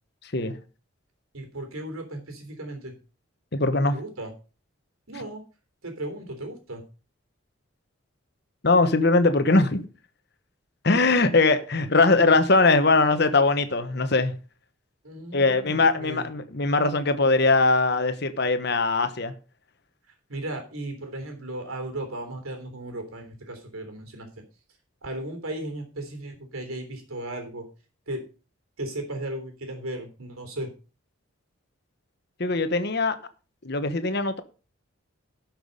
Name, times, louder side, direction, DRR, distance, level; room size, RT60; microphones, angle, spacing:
voice 1, 1.3-2.9 3.9-4.3 5.1-5.4 5.8-6.8 15.0-16.3 20.3-24.4 25.0-27.7 28.1-28.2 28.8-30.7, right 1 dB, 85° right, 3.4 m, -36 dB
voice 2, 3.5-4.0 8.6-9.9 10.8-14.3 15.3-19.3 32.4-33.2 33.6-34.4, left 3 dB, 50° left, 1.1 m, -21 dB
12.0 x 6.0 x 5.3 m
head